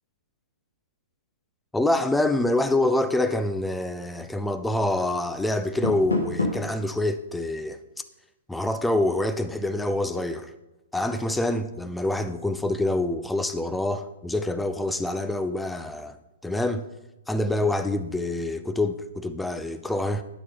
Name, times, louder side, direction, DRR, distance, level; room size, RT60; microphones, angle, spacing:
voice 1, 1.7-7.8 8.5-10.5 10.9-16.2 16.4-16.9 17.3-20.2, left 1 dB, 5° left, 0.4 m, -26 dB
Door, 5.6-6.8, left 2 dB, 85° left, 1.8 m, -28 dB
10.0 x 5.9 x 3.8 m
figure-of-eight pair, 120°, 0 cm